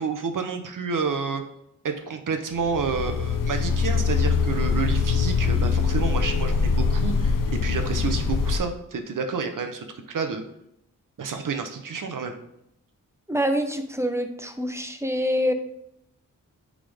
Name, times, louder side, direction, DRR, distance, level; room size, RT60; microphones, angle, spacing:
voice 1, 0.0-1.5 1.8-10.4 11.2-12.4, right 5 dB, 70° right, 7 dB, 0.9 m, -29 dB
sound 1, 2.6-8.6, left 5 dB, 70° left, 0.7 m, -23 dB
voice 2, 13.3-15.5, equal, 10° right, 7 dB, 0.7 m, -25 dB
8.7 x 3.8 x 3.5 m, 0.76 s
wide cardioid pair, 85°, 33 cm